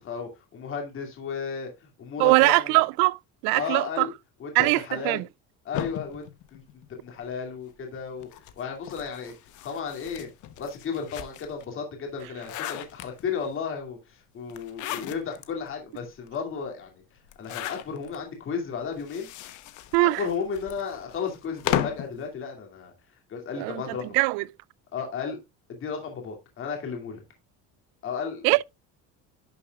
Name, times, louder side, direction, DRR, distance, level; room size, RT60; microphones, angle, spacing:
voice 1, 0.0-1.7 2.0-2.8 3.5-4.1 4.4-5.2 5.6-6.6 7.0-8.3 8.6-9.3 9.6-10.3 10.6-16.9 17.4-19.3 20.0-22.9 23.3-24.2 24.9-25.4 25.7-27.2 28.0-28.6, left 6 dB, 35° left, 2.6 m, -34 dB
voice 2, 2.2-4.1 4.5-5.2 19.9-20.2 23.6-24.4 28.4-28.6, right 23 dB, 90° right, 0.5 m, -22 dB
sound 1, 5.7-7.3 8.2-11.6 12.1-13.5 14.5-15.5 16.0-16.1 16.3-16.4 17.3-18.2 18.9-22.1, left 12 dB, 60° left, 1.0 m, -35 dB
11.0 x 6.8 x 2.4 m
cardioid pair, 150°, 34 cm